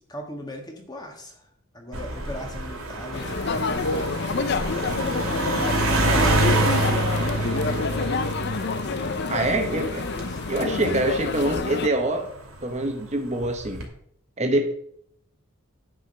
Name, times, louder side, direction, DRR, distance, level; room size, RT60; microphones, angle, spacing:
voice 1, 0.1-1.4 1.7-5.5 6.0-8.2 9.4-10.5, left 1 dB, 20° left, 2 dB, 1.5 m, -38 dB
sound 1, 1.9-12.6 13.4-13.8, right 2 dB, 90° right, 2.5 m, -27 dB
sound 2, 3.1-11.9, left 4 dB, 50° left, 0.5 m, -28 dB
voice 2, 9.3-10.0 10.5-12.3 12.6-13.8 14.4-14.7, right 2 dB, 30° right, 4 dB, 1.0 m, -25 dB
9.6 x 5.1 x 6.7 m, 0.67 s
head